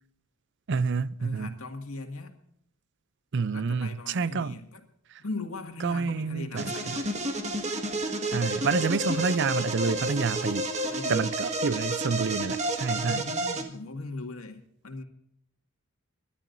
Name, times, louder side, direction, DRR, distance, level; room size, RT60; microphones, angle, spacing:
voice 1, 0.7-1.5 3.3-4.6 5.8-7.0 8.3-10.7 11.1-13.3, right 5 dB, 55° right, 0.5 m, -28 dB
voice 2, 1.2-2.4 3.5-4.8 5.2-7.2 10.9-11.3 12.9-15.0, left 3 dB, 85° left, 2.0 m, -39 dB
sound 1, 6.6-13.6, right 1 dB, 35° right, 1.7 m, -30 dB
29.5 x 12.0 x 2.6 m
head